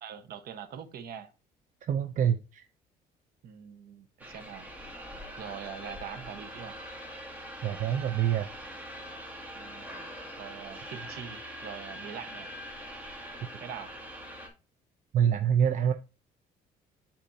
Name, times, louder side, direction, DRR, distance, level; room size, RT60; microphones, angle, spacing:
voice 1, 0.0-1.3 3.4-4.8 5.4-6.8 9.5-9.9 10.4-12.5 13.6-13.9, right 8 dB, 65° right, 1.2 m, -43 dB
voice 2, 1.9-2.6 7.6-8.5 15.1-15.9, right 8 dB, 50° right, 0.6 m, -26 dB
sound 1, 4.2-14.5, equal, 10° right, 2.3 m, -43 dB
12.0 x 4.3 x 2.8 m
cardioid pair, 110°, 17 cm